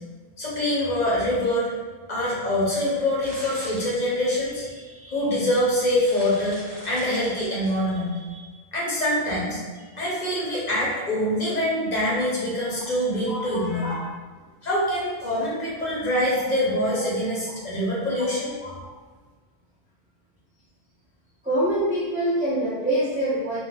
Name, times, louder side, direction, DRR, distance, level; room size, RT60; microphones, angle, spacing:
voice 1, 0.4-1.7 2.1-9.6 10.0-14.0 14.6-18.5, left 1 dB, 45° left, -6 dB, 0.8 m, -25 dB
sound 1, 2.9-4.6 5.3-5.4 5.8-7.9, right 1 dB, 70° right, 1.0 m, -42 dB
voice 2, 13.3-13.6 13.9-14.0 18.6-18.7 21.4-23.6, right 1 dB, 10° right, -8 dB, 0.4 m, -25 dB
2.2 x 2.1 x 3.8 m, 1.4 s
omnidirectional pair, 1.1 m